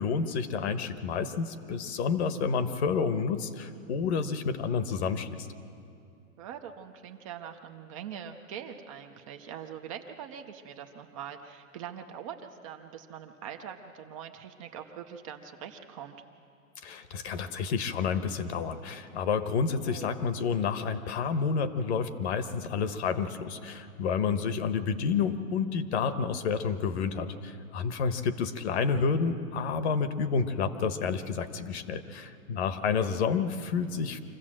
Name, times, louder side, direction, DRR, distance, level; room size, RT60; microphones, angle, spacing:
voice 1, 0.0-5.5 16.8-34.2, left 5 dB, 50° left, 11 dB, 1.2 m, -29 dB
voice 2, 6.4-16.2 19.9-20.1, right 8 dB, 25° right, 5 dB, 0.6 m, -43 dB
25.0 x 15.0 x 7.5 m, 2.5 s
supercardioid pair, 165°, 41 cm